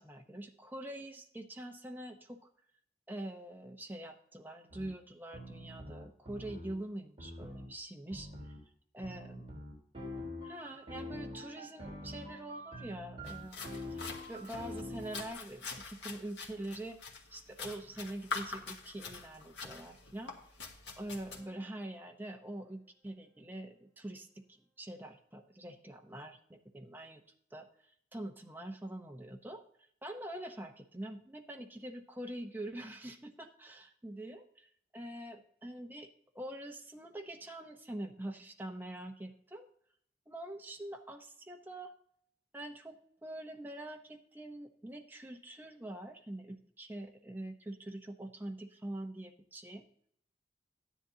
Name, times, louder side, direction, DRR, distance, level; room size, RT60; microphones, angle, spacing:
voice 1, 0.0-2.5 3.1-8.5 8.9-9.4 10.4-17.0 17.3-20.3 21.0-24.4 24.8-27.2 27.5-27.7 28.1-29.6 30.0-36.1 36.3-39.7 40.3-41.9 42.5-49.9, right 1 dB, 10° right, 3 dB, 0.8 m, -44 dB
sound 1, 4.7-4.9 5.3-6.7 7.2-7.7 8.1-8.6 9.0-15.3, left 1 dB, 30° right, 3.7 m, -45 dB
sound 2, 13.2-21.4, left 4 dB, 80° left, 1.6 m, -45 dB
sound 3, 21.4-25.1, right 3 dB, 10° left, 4.5 m, -72 dB
13.0 x 10.0 x 2.8 m, 0.67 s
head